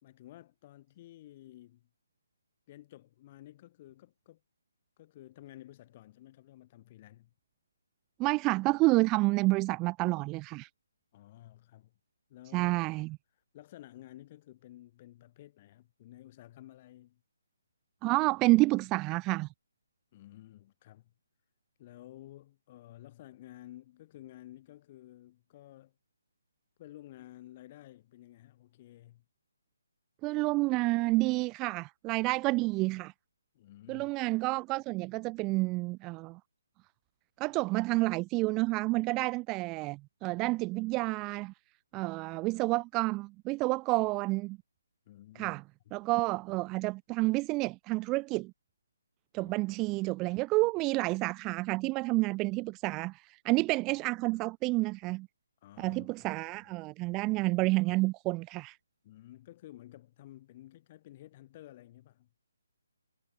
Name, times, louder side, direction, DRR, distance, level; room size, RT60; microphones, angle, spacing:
voice 1, 0.0-1.9 2.7-4.4 5.0-7.3 11.1-11.9 12.3-12.8 13.5-17.2 20.1-21.1 21.8-25.9 26.8-29.2 33.5-34.1 45.1-45.6 49.4-49.6 55.6-56.3 59.0-62.3, left 14 dB, 30° left, 2.5 m, -52 dB
voice 2, 8.2-10.7 12.5-13.2 18.0-19.5 30.2-33.1 33.9-36.4 37.4-41.5 41.9-44.6 45.4-45.6 45.9-48.5 49.3-55.3 55.8-58.8, right 23 dB, 20° right, 0.3 m, -29 dB
hypercardioid pair, 160°, 0 cm